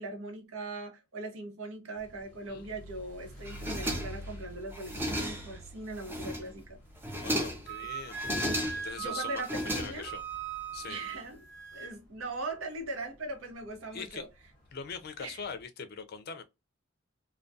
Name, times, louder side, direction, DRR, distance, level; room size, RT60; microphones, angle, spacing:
voice 1, 0.0-6.8 7.1-7.3 9.0-10.1 10.9-11.4 11.7-14.3 15.2-15.4, right 2 dB, 85° right, 0.9 m, -40 dB
sound 1, 1.9-15.6, equal, 5° left, 0.9 m, -50 dB
sound 2, 3.5-4.3 4.7-5.6 6.0-6.6 7.0-7.7 8.1-9.0 9.4-10.3, equal, 10° right, 0.5 m, -34 dB
voice 2, 7.2-8.3 8.7-10.2 10.7-11.0 13.9-14.2 14.7-16.4, left 5 dB, 50° left, 0.4 m, -42 dB
Wind instrument woodwind instrument, 7.7-11.9, right 6 dB, 60° right, 0.8 m, -39 dB
2.3 x 2.2 x 2.5 m
head